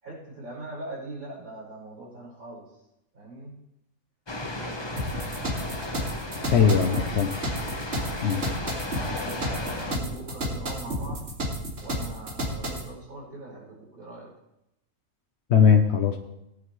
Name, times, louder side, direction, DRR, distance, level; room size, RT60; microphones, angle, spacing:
voice 1, 0.0-2.8 3.1-3.6 4.6-5.5 6.5-7.2 8.9-11.2 11.8-14.3, right 2 dB, 80° right, -5 dB, 5.6 m, -41 dB
sound 1, 4.3-10.0, left 1 dB, 20° left, 1.0 m, -35 dB
sound 2, 5.0-12.9, equal, 55° right, 2.6 m, -31 dB
voice 2, 6.5-7.3 8.2-8.4 15.5-16.2, left 7 dB, 55° left, 3 dB, 1.1 m, -19 dB
18.0 x 9.8 x 3.2 m, 0.85 s
omnidirectional pair, 1.4 m